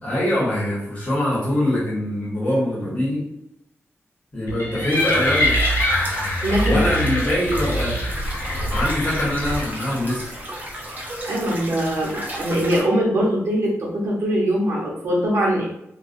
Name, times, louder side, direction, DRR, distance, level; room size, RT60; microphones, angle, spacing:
voice 1, 0.0-3.3 4.3-5.6 6.6-8.0 8.7-10.3, left 1 dB, 30° left, -6 dB, 1.0 m, -23 dB
sound 1, 4.5-9.6, left 1 dB, 65° left, 0.7 m, -23 dB
sound 2, 4.9-12.8, equal, 30° right, 0.7 m, -34 dB
voice 2, 6.4-6.8 11.3-15.7, equal, 65° right, -4 dB, 0.9 m, -22 dB
2.3 x 2.3 x 2.5 m, 0.81 s
wide cardioid pair, 140°, 5 cm